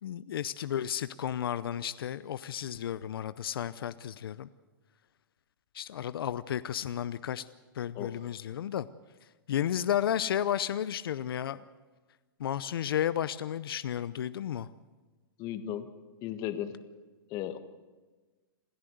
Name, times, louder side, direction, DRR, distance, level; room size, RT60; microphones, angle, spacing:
voice 1, 0.0-4.5 5.7-7.4 7.7-8.9 9.5-11.6 12.4-14.7, left 10 dB, 80° left, 14 dB, 0.7 m, -32 dB
voice 2, 15.4-15.9 16.2-16.7 17.3-17.6, left 11 dB, 30° left, 10 dB, 1.4 m, -35 dB
27.0 x 14.0 x 8.0 m, 1.3 s
hypercardioid pair, 150°, 12 cm